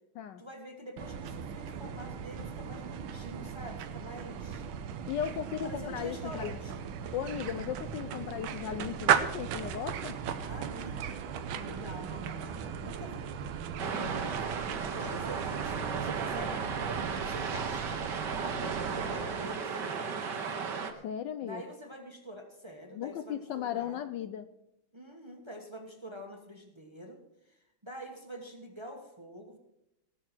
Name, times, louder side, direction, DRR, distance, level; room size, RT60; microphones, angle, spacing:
voice 1, 0.4-4.6 5.6-6.8 10.4-11.0 11.5-13.3 14.0-14.5 14.9-18.0 18.5-20.6 21.4-24.0 24.9-29.6, equal, 15° right, 3 dB, 1.2 m, -46 dB
sound 1, 1.0-19.6, right 8 dB, 90° right, 1.7 m, -36 dB
voice 2, 5.1-6.6 7.1-10.1 13.8-14.2 21.0-21.6 22.9-24.5, left 9 dB, 70° left, 11 dB, 1.1 m, -36 dB
sound 2, 13.8-20.9, right 5 dB, 60° right, 1.7 m, -35 dB
18.0 x 6.6 x 6.0 m, 0.82 s
omnidirectional pair, 2.2 m